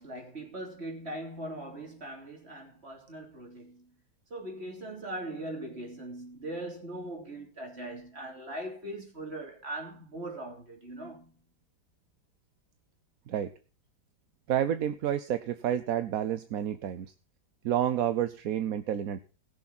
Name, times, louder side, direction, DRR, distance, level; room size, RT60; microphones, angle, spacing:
voice 1, 0.0-3.9 4.3-11.4, right 1 dB, 35° right, 3.5 m, -40 dB
voice 2, 14.5-17.1 17.6-19.2, right 10 dB, 65° right, 1.1 m, -29 dB
20.0 x 6.9 x 4.2 m
omnidirectional pair, 1.8 m